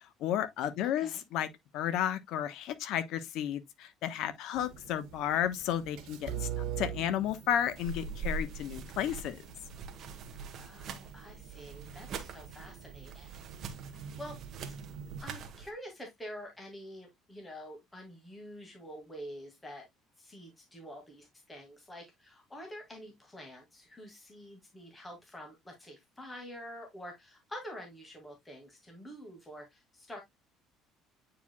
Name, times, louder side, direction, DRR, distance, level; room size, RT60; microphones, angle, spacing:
voice 1, 0.2-1.5 1.7-9.4, left 10 dB, 65° left, 1.0 m, -32 dB
voice 2, 0.8-1.2 10.5-13.4 13.8-14.4 15.2-19.9 20.2-30.2, equal, 10° left, 2.1 m, -47 dB
sound 1, 4.5-15.2, right 9 dB, 80° right, 1.7 m, -44 dB
sound 2, 7.8-15.7, right 4 dB, 45° right, 1.3 m, -43 dB
9.0 x 4.9 x 2.2 m
cardioid pair, 140°, 0 cm